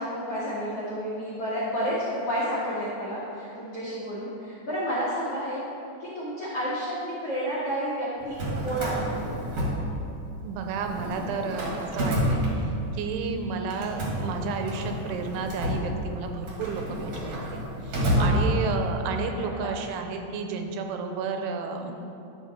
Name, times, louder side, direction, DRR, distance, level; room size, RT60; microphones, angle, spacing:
voice 1, 0.0-5.6 6.0-8.4 8.6-9.1 13.2-13.4 18.1-18.3 19.4-19.7 21.9-22.0, equal, 85° left, -7 dB, 1.3 m, -30 dB
Drawer open or close, 8.2-10.4 10.7-13.1 13.7-19.0, equal, 60° right, 1.6 m, -29 dB
voice 2, 10.4-12.4 12.9-21.9, right 4 dB, 85° right, 5 dB, 3.0 m, -32 dB
12.0 x 6.0 x 4.3 m, 2.8 s
omnidirectional pair, 5.5 m